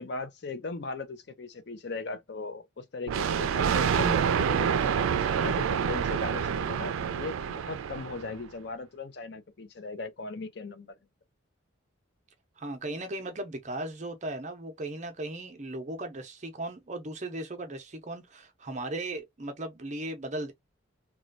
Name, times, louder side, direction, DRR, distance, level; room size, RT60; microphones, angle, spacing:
voice 1, 0.0-10.9, left 3 dB, 55° left, 0.5 m, -38 dB
Thunder, 3.1-8.4, right 7 dB, 90° right, 0.3 m, -27 dB
voice 2, 12.6-20.5, right 1 dB, 35° right, 0.6 m, -37 dB
3.0 x 2.2 x 2.4 m
head